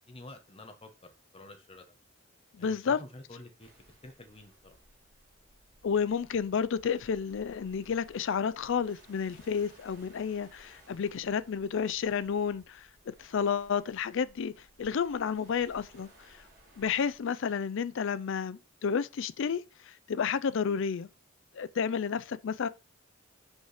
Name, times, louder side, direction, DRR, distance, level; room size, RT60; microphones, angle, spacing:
voice 1, 0.1-1.9 2.6-4.8, left 2 dB, 30° left, 1.1 m, -50 dB
voice 2, 2.5-3.0 5.8-14.5 14.8-16.4 16.8-21.1 21.5-22.7, left 6 dB, 60° left, 0.4 m, -31 dB
sound 1, 3.6-17.2, right 1 dB, 45° right, 3.3 m, -60 dB
5.3 x 4.8 x 4.9 m
head